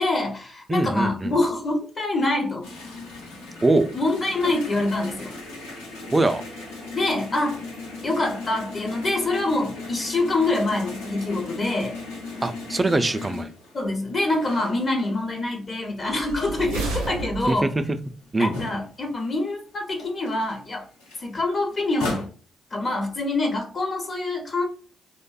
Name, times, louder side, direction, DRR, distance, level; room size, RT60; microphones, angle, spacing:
voice 1, 0.0-2.7 3.9-5.3 6.9-7.6 8.0-12.0 13.7-17.7 18.4-20.9 21.2-22.3 22.7-24.7, left 2 dB, 45° left, 0.6 m, -25 dB
voice 2, 0.7-1.3 3.6-3.9 6.1-6.4 12.4-13.5 17.5-18.0 18.3-18.6, right 2 dB, 25° right, 0.3 m, -22 dB
sound 1, 2.6-15.4 15.8-19.3 19.6-19.7 19.9-22.3, left 2 dB, 85° left, 0.6 m, -37 dB
sound 2, 16.1-17.9, right 3 dB, 85° right, 0.5 m, -31 dB
2.5 x 2.1 x 2.3 m
hypercardioid pair, 40°, 0 cm